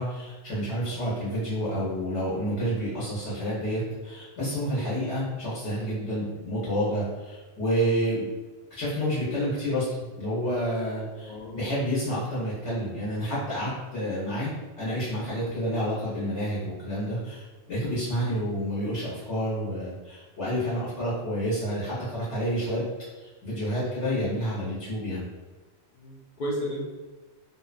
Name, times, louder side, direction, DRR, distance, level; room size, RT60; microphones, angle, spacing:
voice 1, 0.0-8.3 8.7-9.8 10.2-22.9 23.2-25.2, equal, 80° left, -8 dB, 1.1 m, -29 dB
voice 2, 11.2-11.6 18.1-18.3 25.9-26.9, equal, 60° left, -6 dB, 0.5 m, -34 dB
2.6 x 2.1 x 2.4 m, 1.3 s
omnidirectional pair, 1.2 m